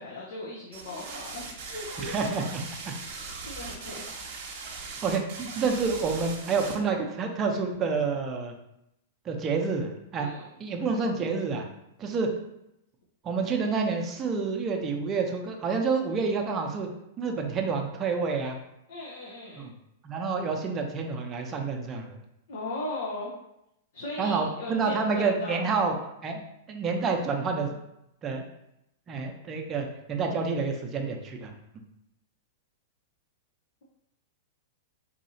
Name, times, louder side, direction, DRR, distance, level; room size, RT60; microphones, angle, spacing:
voice 1, 0.0-2.1 3.4-4.2 10.2-10.5 18.9-19.7 22.5-23.3 23.9-25.7, left 2 dB, 70° left, -3 dB, 0.7 m, -38 dB
sound 1, 0.7-6.8, right 4 dB, 55° right, 0.9 m, -39 dB
voice 2, 2.0-2.9 3.9-4.1 5.0-8.5 9.3-10.3 10.6-11.6 12.0-12.3 13.2-16.9 17.2-18.6 19.6-19.7 20.0-22.2 24.2-25.9 26.2-26.4 26.7-27.8 28.2-28.4 29.1-31.5, right 4 dB, 25° right, 2 dB, 0.6 m, -28 dB
4.1 x 2.7 x 2.7 m, 0.82 s
hypercardioid pair, 110°, 0 cm